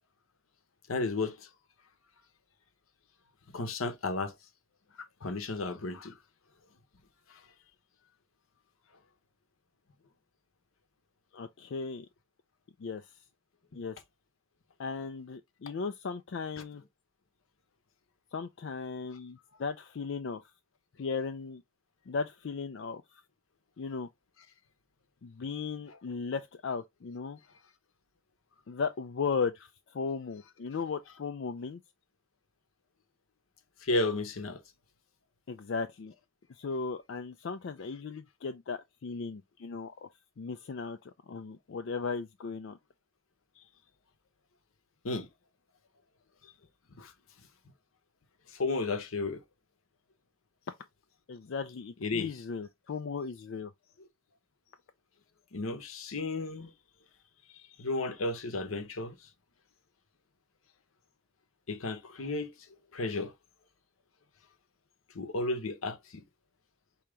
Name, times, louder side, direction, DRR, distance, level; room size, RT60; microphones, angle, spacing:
voice 1, 0.9-1.5 3.5-4.3 5.2-6.1 33.8-34.6 45.0-45.3 47.0-47.1 48.5-49.4 52.0-52.3 55.5-56.7 57.8-59.2 61.7-62.5 62.9-63.3 65.1-66.2, left 2 dB, 85° left, 0.9 m, -33 dB
voice 2, 11.3-12.1 12.8-13.1 13.7-14.0 14.8-16.8 18.3-20.4 21.0-21.6 22.1-23.0 23.8-24.1 25.2-27.4 28.7-31.8 35.5-36.1 36.6-40.1 40.4-42.8 51.3-53.7, left 5 dB, 60° left, 0.4 m, -36 dB
4.9 x 2.8 x 3.2 m
head